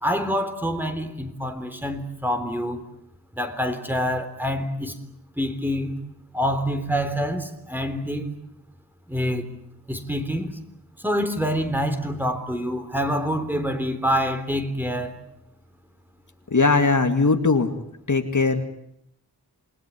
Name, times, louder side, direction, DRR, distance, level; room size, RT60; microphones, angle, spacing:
voice 1, 0.0-2.8 3.3-5.0 5.4-6.0 6.3-8.3 9.1-9.5 9.9-10.6 11.0-15.2, equal, 5° right, 7 dB, 3.7 m, -26 dB
voice 2, 16.5-17.7 18.1-18.7, left 3 dB, 50° left, 6 dB, 2.3 m, -20 dB
28.5 x 21.0 x 9.7 m, 0.77 s
wide cardioid pair, 80°, 39 cm